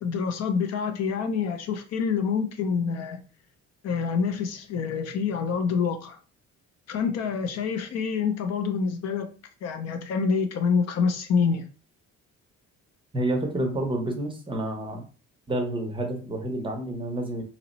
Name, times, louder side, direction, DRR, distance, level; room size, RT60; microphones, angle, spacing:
voice 1, 0.0-3.2 3.8-6.2 6.9-9.3 9.6-11.7, left 5 dB, 60° left, 0.6 m, -26 dB
voice 2, 13.1-15.0 15.5-17.4, right 1 dB, 15° right, 0.6 m, -29 dB
2.9 x 2.0 x 4.0 m
cardioid pair, 175°, 30 cm